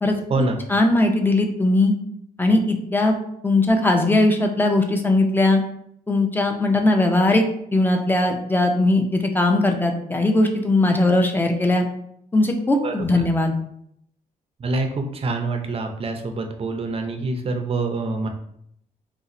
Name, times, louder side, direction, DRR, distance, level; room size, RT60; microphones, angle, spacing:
voice 1, 0.7-1.9 2.4-3.2 3.4-5.6 6.1-11.8 12.3-13.6, left 2 dB, 15° left, 3 dB, 0.4 m, -19 dB
voice 2, 12.8-13.2 14.6-18.3, right 3 dB, 40° right, 4 dB, 0.5 m, -26 dB
2.5 x 2.4 x 4.0 m, 0.70 s
cardioid pair, 125°, 16 cm